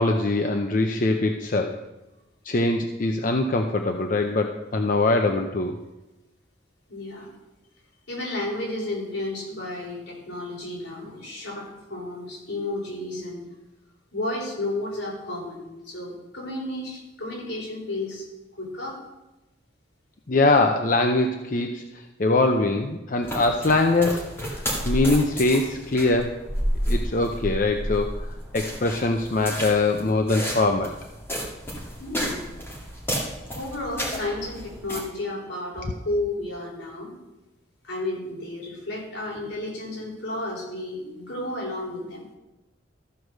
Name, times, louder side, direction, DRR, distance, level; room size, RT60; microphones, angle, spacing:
voice 1, 0.0-1.7 2.4-5.7 20.3-21.8 22.2-26.4 26.9-28.3 28.5-30.9, left 2 dB, 45° left, 4 dB, 0.6 m, -22 dB
voice 2, 6.9-7.3 8.1-13.4 14.1-18.3 18.6-19.0 32.0-32.5 33.5-37.1 37.8-42.2, left 2 dB, 75° left, -4 dB, 4.3 m, -32 dB
sound 1, 23.2-35.0, equal, 10° left, 2.2 m, -31 dB
14.0 x 4.8 x 6.4 m, 1.0 s
head